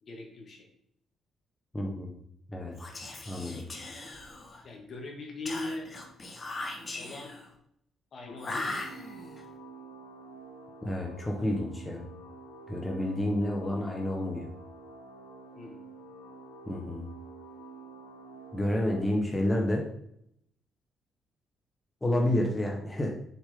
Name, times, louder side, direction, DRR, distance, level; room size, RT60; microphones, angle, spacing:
voice 1, 0.0-0.7 4.6-5.9 6.9-7.4 8.1-8.8 15.6-15.8, left 2 dB, 55° left, 1 dB, 2.3 m, -40 dB
voice 2, 1.7-2.1 2.5-2.7 3.2-3.6 10.8-12.1 12.7-14.5 16.7-17.1 18.5-19.8 22.0-23.1, left 1 dB, 15° left, 0 dB, 1.3 m, -29 dB
Whispering, 2.7-4.7 5.5-7.5 8.4-9.4, left 2 dB, 30° left, 1.5 m, -39 dB
sound 1, 8.3-19.1, right 3 dB, 90° left, 1.9 m, -48 dB
7.1 x 6.7 x 3.8 m, 0.73 s
cardioid pair, 90°, 0 cm